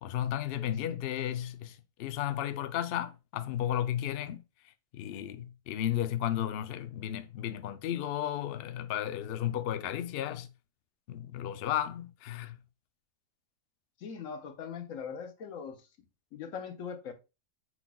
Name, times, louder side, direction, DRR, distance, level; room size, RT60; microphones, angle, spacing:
voice 1, 0.0-4.4 4.9-10.5 11.1-12.6, left 11 dB, 80° left, 0.5 m, -34 dB
voice 2, 14.0-15.8 16.3-17.1, left 6 dB, 65° left, 1.1 m, -40 dB
5.8 x 4.0 x 2.2 m
omnidirectional pair, 1.6 m